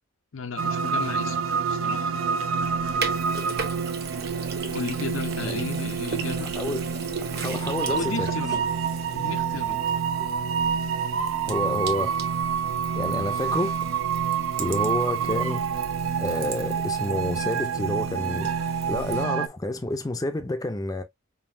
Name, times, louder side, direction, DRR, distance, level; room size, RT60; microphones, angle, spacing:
voice 1, 0.3-1.4 1.7-2.2 4.7-6.5 7.9-8.6 9.1-9.8, left 5 dB, 75° left, 0.7 m, -34 dB
sound 1, 0.6-19.5, right 6 dB, 75° right, 0.5 m, -27 dB
Sink (filling or washing), 2.6-19.2, right 5 dB, 50° right, 1.0 m, -38 dB
voice 2, 5.4-5.7 6.6-6.8 7.2-8.3 11.5-12.1 13.0-13.7 14.6-15.8 16.2-21.0, left 2 dB, 20° left, 0.5 m, -29 dB
5.4 x 2.6 x 2.6 m
head